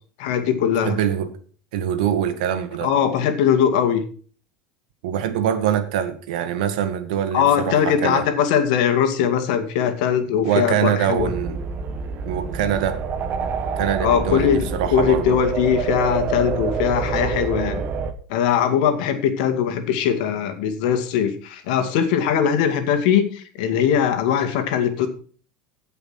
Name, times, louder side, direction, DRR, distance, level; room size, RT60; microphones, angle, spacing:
voice 1, 0.2-1.0 2.8-4.0 7.3-11.3 14.0-17.8 18.3-25.1, left 8 dB, 75° left, 2.2 m, -20 dB
voice 2, 0.8-1.4 1.7-2.9 5.0-8.3 10.4-11.6 12.2-13.0 13.8-15.4, right 9 dB, 80° right, 1.8 m, -24 dB
sound 1, 11.2-18.1, right 5 dB, 40° right, 1.5 m, -27 dB
16.5 x 5.7 x 5.8 m
supercardioid pair, 130°, 4 cm